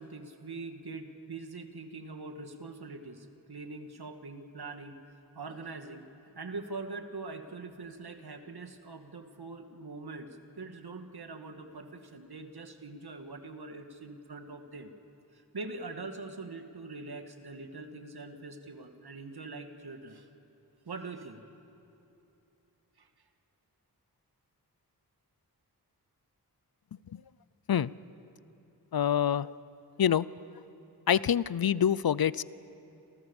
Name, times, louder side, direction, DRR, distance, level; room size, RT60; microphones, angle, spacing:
voice 1, 0.0-4.9 5.3-14.9 15.3-20.3 20.9-21.4 23.0-23.1, right 3 dB, 75° right, 6 dB, 2.0 m, -43 dB
voice 2, 28.9-29.5 30.0-30.2 31.1-32.4, left 9 dB, 65° left, 19 dB, 0.6 m, -26 dB
28.5 x 27.5 x 7.2 m, 2.9 s
wide cardioid pair, 85°, 38 cm